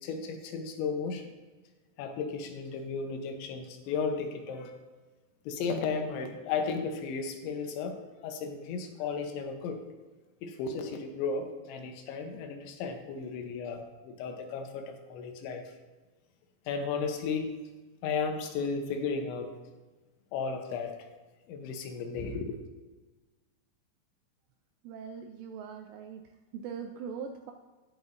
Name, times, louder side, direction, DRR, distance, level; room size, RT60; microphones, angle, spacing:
voice 1, 0.0-1.3 2.0-4.7 5.5-8.0 8.2-9.8 10.4-15.6 16.7-17.5 18.0-19.5 20.3-21.1 21.5-22.6, left 5 dB, 80° left, 5 dB, 3.1 m, -34 dB
voice 2, 24.8-26.2 26.5-27.5, right 6 dB, 85° right, 4 dB, 2.5 m, -41 dB
17.5 x 6.1 x 2.6 m, 1.3 s
omnidirectional pair, 5.5 m